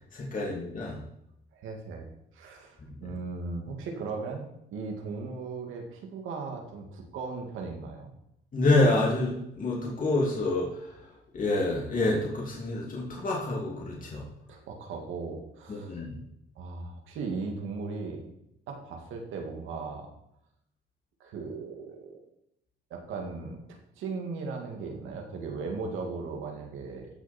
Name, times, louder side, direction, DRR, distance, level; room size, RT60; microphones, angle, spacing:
voice 1, 0.1-1.0 2.8-2.9 8.5-11.0 11.3-14.3 15.7-16.2, left 2 dB, 45° left, -3 dB, 2.8 m, -27 dB
voice 2, 1.5-2.1 2.3-4.4 4.7-8.1 14.5-16.0 16.6-18.3 18.7-20.1 21.2-22.2 22.9-23.6 24.0-27.1, right 4 dB, 85° right, 2 dB, 2.3 m, -37 dB
14.5 x 6.5 x 4.4 m, 0.80 s
cardioid pair, 90°, 20 cm